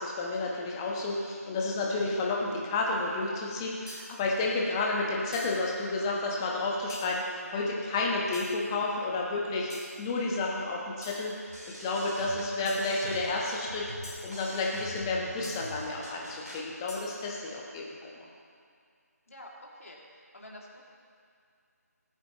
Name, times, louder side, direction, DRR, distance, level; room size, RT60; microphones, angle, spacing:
voice 1, 0.0-9.7 10.0-11.3 11.7-18.1, left 2 dB, 15° left, -2 dB, 1.2 m, -31 dB
sound 1, 3.9-4.3 5.3-5.7 6.9-7.3 8.3-8.7 9.7-10.1 11.0-11.4 12.7-13.0 14.0-14.4 15.4-15.8 16.9-17.3, equal, 75° left, 2.7 m, -47 dB
sound 2, 11.5-16.6, equal, 80° right, 2.8 m, -44 dB
voice 2, 19.3-20.0 20.3-20.9, left 1 dB, 60° left, -2 dB, 2.6 m, -48 dB
19.5 x 8.4 x 3.1 m, 2.2 s
figure-of-eight pair, 155°, 9 cm